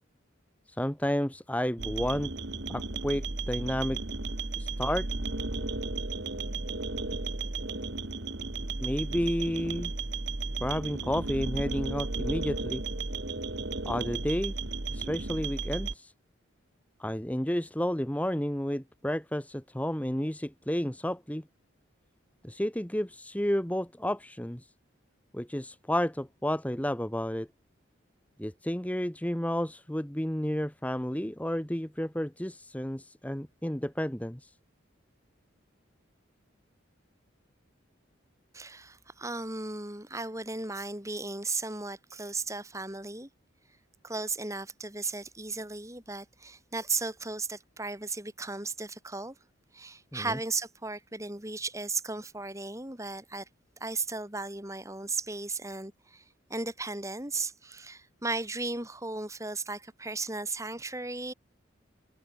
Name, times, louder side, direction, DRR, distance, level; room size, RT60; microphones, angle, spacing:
voice 1, 0.7-2.3 2.7-4.0 4.6-5.1 8.8-9.9 10.6-12.8 13.8-14.5 14.9-16.1 17.0-21.4 22.4-24.7 25.3-27.5 28.4-34.5 50.1-50.4, equal, 5° left, 1.0 m, -31 dB
sound 1, 1.8-15.9, right 3 dB, 55° right, 2.0 m, -34 dB
voice 2, 38.5-43.3 44.0-49.3 49.7-53.4 53.8-56.2 56.5-61.3, right 3 dB, 15° right, 4.0 m, -35 dB
head